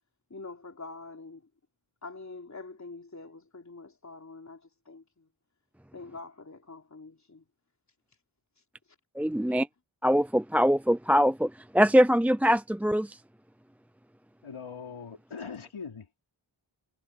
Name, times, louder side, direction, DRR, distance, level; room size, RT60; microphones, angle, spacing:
voice 1, 0.3-1.5 2.0-5.3 5.9-7.4 8.6-8.7 9.5-9.6, left 3 dB, 35° left, 3.4 m, -45 dB
voice 2, 9.2-9.7 10.0-13.2, equal, 5° right, 0.3 m, -23 dB
voice 3, 14.4-16.2, left 5 dB, 75° left, 4.6 m, -41 dB
wide cardioid pair, 85°, 49 cm